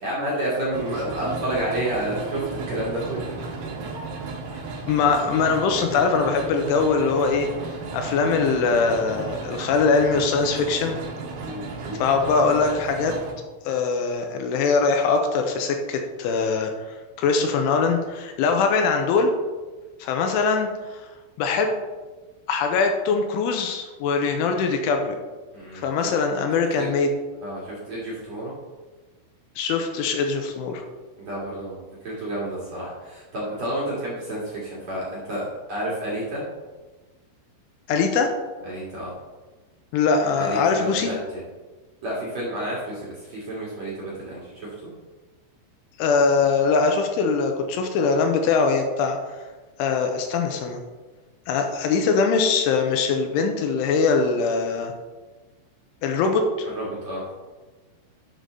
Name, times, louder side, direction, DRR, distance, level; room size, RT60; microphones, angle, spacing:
voice 1, 0.0-3.6 11.4-12.0 25.5-25.9 26.7-26.9 27.4-28.5 31.2-36.4 38.6-39.1 40.3-40.6 41.0-41.2 42.0-44.9 56.7-57.2, right 1 dB, 45° right, -6 dB, 2.4 m, -30 dB
sound 1, 0.7-13.3, right 4 dB, 65° right, 2.6 m, -34 dB
voice 2, 4.9-7.5 7.9-11.0 12.0-13.1 13.6-16.7 17.2-19.3 20.0-21.0 21.4-21.8 22.5-25.2 25.7-27.1 29.6-30.8 37.9-38.3 39.9-41.1 46.0-49.4 49.8-50.8 51.5-54.9 56.0-56.4, left 4 dB, 85° left, 4 dB, 3.1 m, -22 dB
11.5 x 6.7 x 3.9 m, 1.3 s
omnidirectional pair, 5.8 m